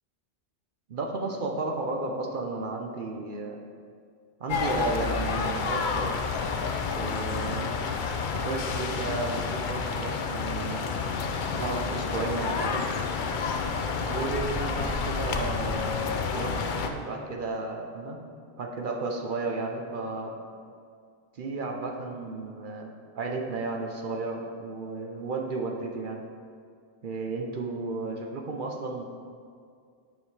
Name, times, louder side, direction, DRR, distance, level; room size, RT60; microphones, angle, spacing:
voice 1, 0.9-3.6 4.4-6.1 6.9-7.8 8.3-10.9 11.5-12.8 14.0-18.2 18.6-20.4 21.3-26.2 27.0-29.0, right 3 dB, 50° right, 2 dB, 0.8 m, -33 dB
sound 1, 4.5-16.9, left 5 dB, 55° left, 0.6 m, -29 dB
9.2 x 5.3 x 3.2 m, 2.2 s
omnidirectional pair, 1.2 m